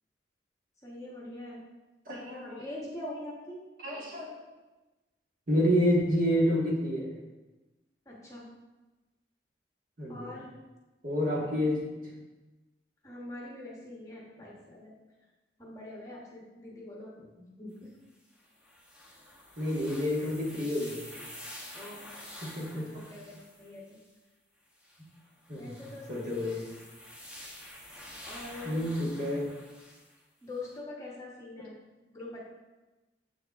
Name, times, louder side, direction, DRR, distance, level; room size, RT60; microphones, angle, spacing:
voice 1, 0.8-1.6 2.6-3.6 8.0-8.5 10.1-10.5 13.0-14.9 15.6-17.1 17.4-18.0 19.1-19.2 21.7-22.1 22.5-23.9 25.5-26.6 28.3-28.9 30.4-31.7 32.1-32.5, left 2 dB, 20° left, -4 dB, 1.1 m, -43 dB
voice 2, 2.1-2.6 3.8-4.4 5.5-7.1 10.0-10.3 11.0-11.8 19.6-21.1 22.4-22.9 25.5-25.7 26.1-26.6 28.6-29.5, equal, 50° right, -4 dB, 1.6 m, -29 dB
sound 1, 18.3-24.1 24.8-30.2 30.7-30.8, left 1 dB, 5° right, 0.8 m, -48 dB
7.6 x 6.4 x 2.4 m, 1.1 s
head